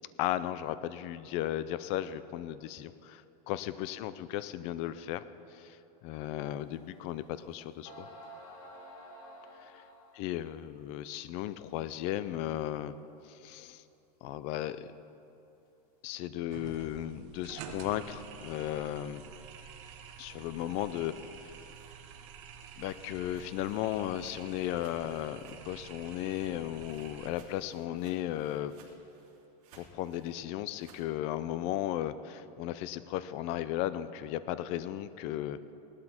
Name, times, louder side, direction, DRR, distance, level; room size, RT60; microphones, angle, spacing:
voice 1, 0.2-3.2 3.5-5.2 5.5-5.8 6.0-8.1 9.6-9.7 10.2-12.9 13.3-13.8 14.2-14.9 16.0-19.3 20.2-21.1 22.8-28.7 29.7-35.7, left 13 dB, 30° left, 14 dB, 0.4 m, -35 dB
sound 1, 6.7-6.8 7.5-7.6 7.8-10.3, equal, 60° left, 3.0 m, -50 dB
sound 2, 16.5-27.3, right 7 dB, 45° right, 1.3 m, -49 dB
sound 3, 21.6-25.9 26.1-31.1, right 5 dB, 65° right, 3.2 m, -62 dB
17.5 x 12.0 x 4.4 m, 2.9 s
supercardioid pair, 165°, 21 cm